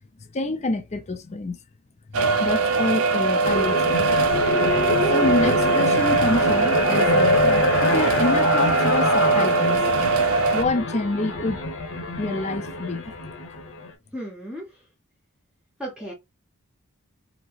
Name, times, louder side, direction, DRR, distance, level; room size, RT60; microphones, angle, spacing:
voice 1, 0.3-1.6 2.1-4.0 5.1-7.4 7.8-9.8 10.5-11.7 12.2-13.1, left 2 dB, 30° left, 0.5 m, -27 dB
sound 1, 2.1-10.6, right 3 dB, 70° right, 0.4 m, -21 dB
sound 2, 3.4-13.9, left 2 dB, 60° left, 0.8 m, -25 dB
voice 2, 14.1-14.7 15.8-16.1, right 1 dB, 5° right, 0.7 m, -34 dB
2.9 x 2.6 x 2.8 m
head